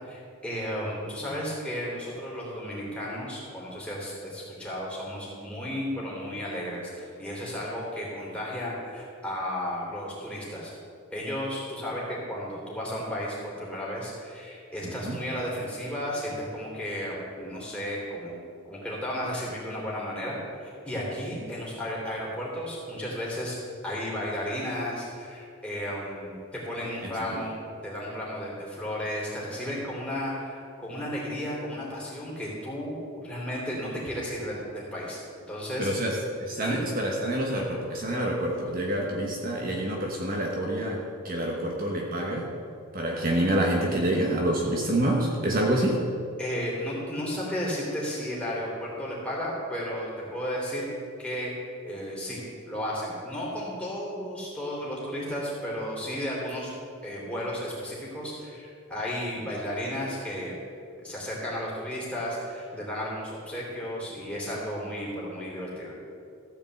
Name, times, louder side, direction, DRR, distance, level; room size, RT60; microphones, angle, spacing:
voice 1, 0.0-10.7 11.1-18.3 18.7-23.5 23.8-27.6 27.8-35.2 35.5-35.9 36.6-36.8 46.4-50.9 51.2-51.5 51.8-52.4 52.6-56.7 57.0-60.5 61.0-65.9, equal, 5° left, -6 dB, 3.1 m, -33 dB
voice 2, 35.8-41.0 41.2-42.5 42.9-46.0, right 1 dB, 40° right, -1 dB, 1.2 m, -27 dB
14.5 x 5.1 x 7.8 m, 2.4 s
head